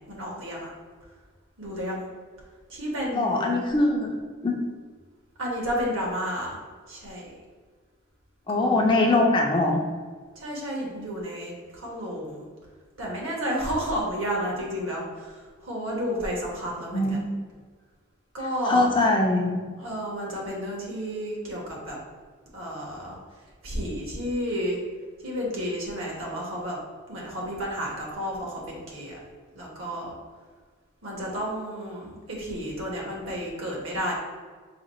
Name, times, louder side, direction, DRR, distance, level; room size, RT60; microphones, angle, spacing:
voice 1, 0.1-0.7 1.6-2.1 2.7-3.6 5.4-6.6 6.9-7.3 8.5-8.8 10.3-12.5 13.0-15.3 15.6-17.2 18.3-18.9 19.8-22.0 22.5-23.2 23.6-24.8 25.2-26.8 27.1-29.2 29.5-30.1 31.0-34.1, equal, 70° right, -3 dB, 1.3 m, -31 dB
voice 2, 3.1-4.1 4.4-4.5 8.5-9.8 16.9-17.3 18.7-19.6, left 2 dB, 20° left, 1 dB, 0.4 m, -22 dB
4.9 x 2.3 x 4.2 m, 1.5 s
head